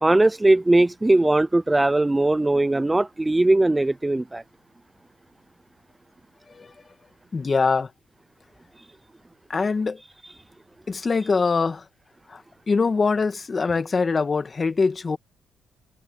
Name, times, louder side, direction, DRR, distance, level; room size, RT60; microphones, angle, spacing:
voice 1, 0.0-4.4, right 2 dB, 15° right, 0.6 m, -19 dB
voice 2, 7.3-7.9 9.5-10.0 10.9-11.9 12.3-15.2, left 4 dB, 35° left, 2.0 m, -23 dB
cardioid pair, 90°, 0 cm